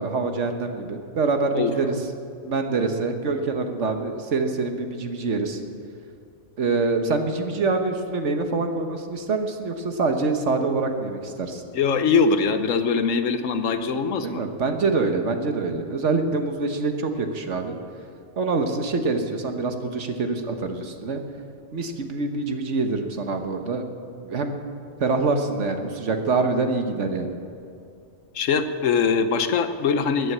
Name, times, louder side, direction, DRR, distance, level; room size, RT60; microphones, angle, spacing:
voice 1, 0.0-2.0 2.4-5.6 6.6-11.6 14.2-17.8 18.4-21.2 21.7-23.8 24.2-24.5 25.0-27.3, right 3 dB, 70° right, 5 dB, 1.5 m, -25 dB
voice 2, 11.7-14.4 28.3-30.3, left 5 dB, 90° left, 9 dB, 1.3 m, -22 dB
13.5 x 9.6 x 8.5 m, 2.5 s
omnidirectional pair, 1.3 m